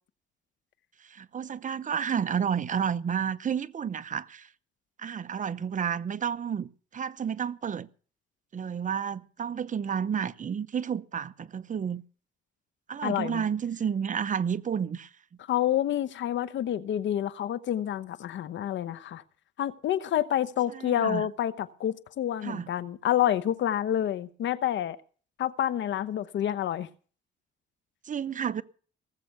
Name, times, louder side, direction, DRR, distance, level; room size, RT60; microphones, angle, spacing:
voice 1, 1.0-4.5 5.0-7.9 8.5-12.0 12.9-15.1 20.7-21.3 22.4-22.7 28.0-28.6, right 7 dB, 40° right, 0.8 m, -31 dB
voice 2, 13.0-13.5 15.5-19.2 19.6-25.0 25.4-26.9, left 11 dB, 70° left, 1.0 m, -28 dB
18.5 x 7.7 x 6.9 m
cardioid pair, 90°, 20 cm